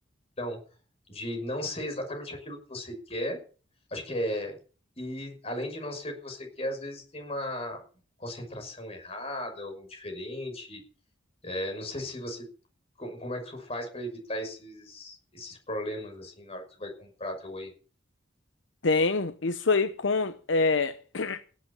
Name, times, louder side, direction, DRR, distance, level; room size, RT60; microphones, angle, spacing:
voice 1, 1.1-3.4 3.9-4.6 5.0-7.8 8.2-10.8 11.4-12.5 13.0-17.7, left 1 dB, 35° left, 5.9 m, -36 dB
voice 2, 18.8-21.4, left 3 dB, 75° left, 0.8 m, -26 dB
17.5 x 8.6 x 7.2 m
head